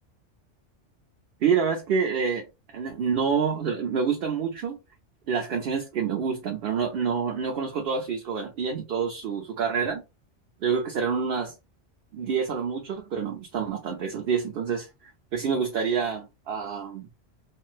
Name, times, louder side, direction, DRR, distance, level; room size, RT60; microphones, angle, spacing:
voice 1, 1.4-2.5 2.7-4.8 5.3-10.0 10.6-11.5 12.1-14.9 15.3-17.1, right 6 dB, 60° right, 0.8 m, -27 dB
3.1 x 2.1 x 3.2 m
omnidirectional pair, 1.2 m